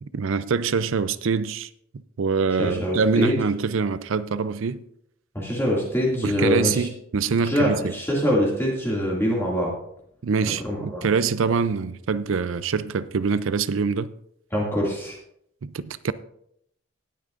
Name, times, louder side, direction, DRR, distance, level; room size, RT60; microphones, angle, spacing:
voice 1, 0.0-1.7 2.2-4.8 6.2-7.9 10.2-14.1 15.6-16.1, right 5 dB, 70° right, 0.5 m, -24 dB
voice 2, 2.6-3.3 5.3-6.9 7.4-9.7 10.6-11.1 14.5-15.2, equal, 10° left, 2.3 m, -24 dB
18.5 x 8.6 x 2.5 m
head